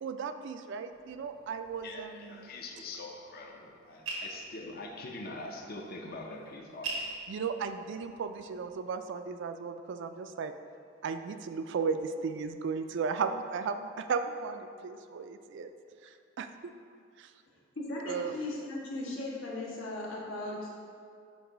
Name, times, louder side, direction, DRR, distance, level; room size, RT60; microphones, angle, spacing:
voice 1, 0.0-2.5 7.3-10.5 11.0-15.7 16.4-16.7 17.2-17.3 18.1-18.3, right 5 dB, 60° right, 8 dB, 0.3 m, -35 dB
sound 1, 0.9-8.7, right 2 dB, 90° right, 0.9 m, -45 dB
voice 2, 1.8-7.1, left 2 dB, 50° left, 1 dB, 0.5 m, -43 dB
voice 3, 17.7-20.7, left 2 dB, 85° left, -4 dB, 1.3 m, -37 dB
7.8 x 2.6 x 4.9 m, 2.3 s
head